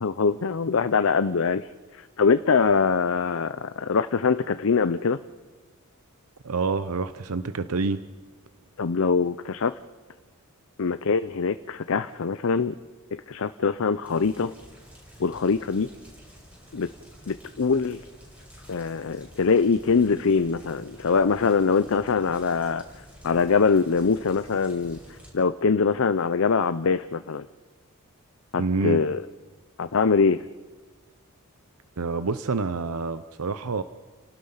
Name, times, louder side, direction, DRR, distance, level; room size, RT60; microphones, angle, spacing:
voice 1, 0.0-5.2 8.8-9.7 10.8-12.7 13.3-14.5 15.2-15.9 16.7-16.9 17.3-18.0 18.7-22.8 23.2-27.5 28.5-29.3 29.8-30.5, left 5 dB, 60° left, 12 dB, 0.6 m, -23 dB
voice 2, 6.4-8.0 28.6-29.0 32.0-33.8, right 4 dB, 80° right, 12 dB, 0.7 m, -27 dB
sound 1, 14.0-25.3, equal, 5° right, 6.4 m, -49 dB
29.5 x 18.5 x 5.7 m, 1.3 s
head